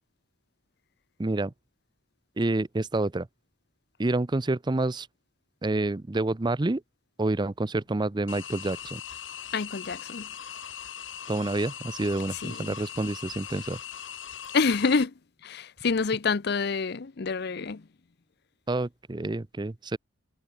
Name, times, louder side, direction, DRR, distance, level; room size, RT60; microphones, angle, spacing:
voice 1, 1.2-1.5 2.4-3.3 4.0-5.1 5.6-6.8 7.2-9.0 11.3-13.8 18.7-20.0, right 2 dB, 25° right, 0.6 m, -28 dB
sound 1, 8.3-15.0, left 9 dB, 80° left, 3.2 m, -40 dB
voice 2, 9.5-10.3 12.4-12.7 14.5-15.1 15.4-17.8, left 4 dB, 60° left, 0.7 m, -27 dB
head